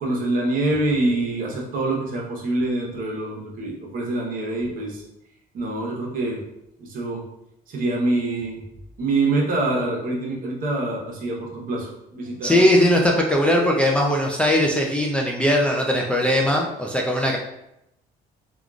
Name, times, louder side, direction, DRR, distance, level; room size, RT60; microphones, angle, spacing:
voice 1, 0.0-5.0 5.5-6.4 6.8-7.2 7.7-8.6 9.0-12.6, right 2 dB, 55° right, -2 dB, 0.9 m, -25 dB
voice 2, 12.4-17.4, left 1 dB, 5° left, -1 dB, 0.3 m, -19 dB
3.6 x 2.3 x 2.3 m, 0.83 s
cardioid pair, 110°, 17 cm